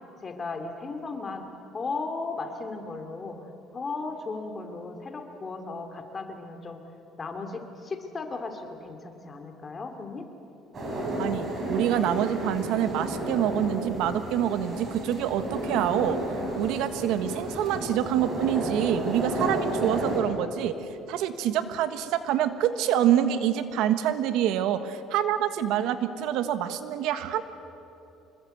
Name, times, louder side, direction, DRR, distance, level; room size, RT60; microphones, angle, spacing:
voice 1, 0.2-3.4 3.7-6.8 7.2-10.2, left 3 dB, 30° left, 5 dB, 2.9 m, -36 dB
sound 1, 10.7-20.2, right 1 dB, 35° right, 6.7 m, -32 dB
voice 2, 11.2-16.2 16.6-20.8 21.1-27.4, right 10 dB, 80° right, 10 dB, 1.3 m, -26 dB
26.0 x 21.5 x 8.0 m, 2.9 s
cardioid pair, 120°, 0 cm